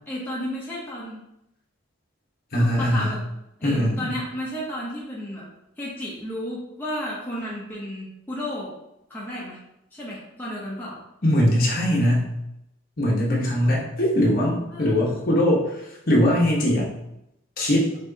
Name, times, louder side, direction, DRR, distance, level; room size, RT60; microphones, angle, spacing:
voice 1, 0.1-1.2 2.6-3.2 3.6-5.5 5.8-8.7 9.1-9.6 9.9-11.0 14.7-15.1, equal, 10° left, -7 dB, 0.7 m, -33 dB
voice 2, 2.5-3.1 3.6-4.1 11.2-12.3 13.0-15.6 16.1-16.9 17.6-17.9, equal, 45° left, -4 dB, 1.1 m, -21 dB
6.1 x 3.0 x 2.8 m, 0.86 s
head